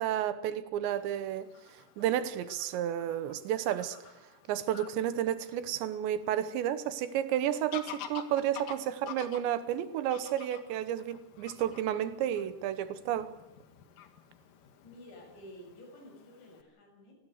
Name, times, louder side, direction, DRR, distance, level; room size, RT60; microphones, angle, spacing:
voice 1, 0.0-1.5 2.0-4.0 4.5-13.3, right 11 dB, 80° right, 13 dB, 3.3 m, -31 dB
Fowl / Bird vocalization bird call bird song, 0.9-16.6, left 9 dB, 60° left, 2.7 m, -50 dB
voice 2, 14.8-17.2, equal, 75° left, 3 dB, 8.7 m, -51 dB
26.0 x 19.5 x 6.6 m, 0.92 s
omnidirectional pair, 5.1 m